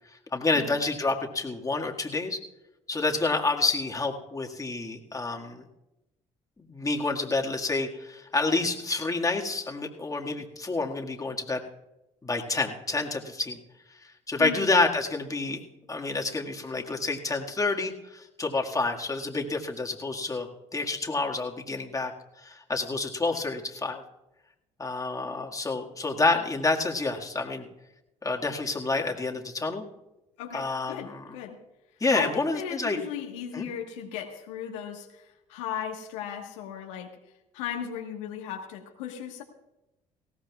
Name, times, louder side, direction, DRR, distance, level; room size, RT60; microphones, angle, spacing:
voice 1, 0.3-2.4 2.9-5.6 6.7-11.6 12.2-13.6 14.3-15.6 15.9-22.1 22.4-24.0 24.8-27.7 28.2-29.9 30.5-31.2 32.0-33.0 33.5-33.7, left 3 dB, 20° left, 1 dB, 1.9 m, -28 dB
voice 2, 30.4-31.6 32.1-37.2 37.5-39.4, left 9 dB, 85° left, 2 dB, 1.4 m, -36 dB
19.5 x 16.5 x 2.4 m, 0.94 s
hypercardioid pair, 60°, 15 cm